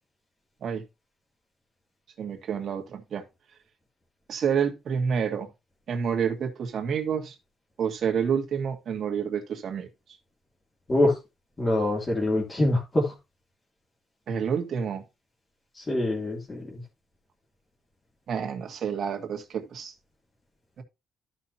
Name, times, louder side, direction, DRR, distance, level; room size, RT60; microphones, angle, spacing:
voice 1, 2.2-3.2 4.3-5.5 5.9-7.4 7.8-9.9 14.3-15.0 18.3-19.9 20.8-20.9, right 7 dB, 55° right, 1.9 m, -28 dB
voice 2, 11.6-13.1 15.7-16.8, left 1 dB, 20° left, 2.8 m, -25 dB
13.0 x 5.8 x 2.8 m
cardioid pair, 155°, 0 cm